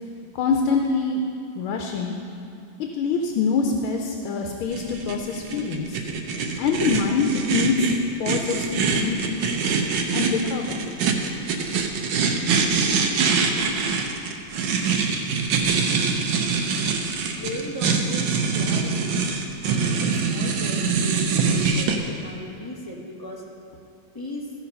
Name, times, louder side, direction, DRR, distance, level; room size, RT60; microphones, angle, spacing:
voice 1, 0.3-1.2 1.5-2.1 2.8-6.0 6.6-7.9 8.2-9.2 10.1-10.8, left 4 dB, 85° left, 2 dB, 1.6 m, -24 dB
sound 1, 4.7-22.0, right 5 dB, 75° right, 1.5 m, -24 dB
voice 2, 14.8-15.4 17.2-19.2 19.6-23.4 24.1-24.5, left 1 dB, 15° left, -3 dB, 1.0 m, -37 dB
14.5 x 5.8 x 5.4 m, 2.6 s
omnidirectional pair, 2.2 m